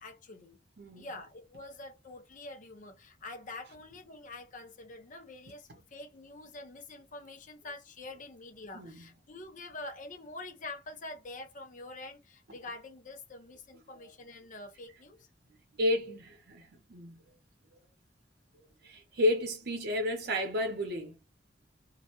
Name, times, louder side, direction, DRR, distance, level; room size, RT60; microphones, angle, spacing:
voice 1, 0.0-0.6 1.0-15.3, left 2 dB, 45° left, 0.7 m, -46 dB
voice 2, 0.8-1.1 8.7-9.0 15.8-17.2 18.8-21.2, left 1 dB, 60° right, 0.7 m, -31 dB
2.4 x 2.1 x 2.8 m
head